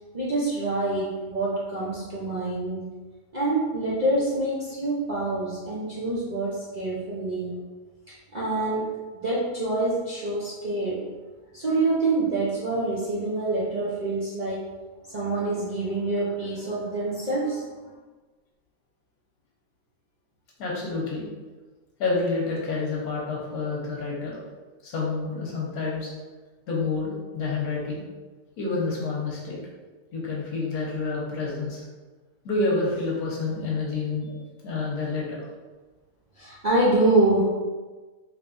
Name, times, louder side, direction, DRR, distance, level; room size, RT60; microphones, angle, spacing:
voice 1, 0.1-2.9 3.3-7.6 8.1-8.9 9.1-11.0 11.5-14.7 15.1-17.7 36.4-37.5, right 2 dB, 50° right, -9 dB, 0.5 m, -26 dB
voice 2, 20.6-21.2 22.0-24.4 24.8-26.1 26.7-28.0 28.6-29.6 30.1-31.8 32.4-34.4 34.6-35.4, left 3 dB, 80° left, -4 dB, 1.4 m, -28 dB
3.4 x 3.2 x 2.5 m, 1.3 s
omnidirectional pair, 1.6 m